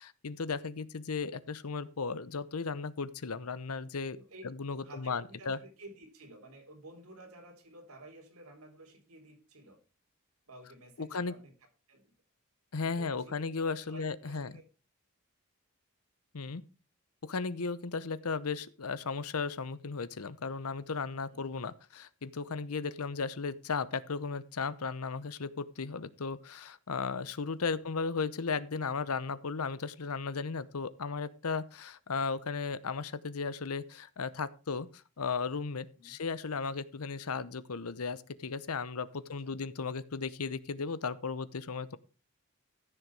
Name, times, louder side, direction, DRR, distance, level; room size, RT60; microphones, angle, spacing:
voice 1, 0.0-4.2 4.4-5.6 11.0-11.3 12.7-14.5 16.3-16.6 17.2-42.0, left 4 dB, 90° left, 17 dB, 0.8 m, -35 dB
voice 2, 4.8-9.8 10.5-11.5 11.9-12.0 13.0-13.4 13.9-14.6 21.3-21.5 36.0-36.2 39.4-39.6, right 1 dB, 80° right, 3 dB, 3.6 m, -52 dB
14.5 x 6.7 x 4.7 m, 0.34 s
head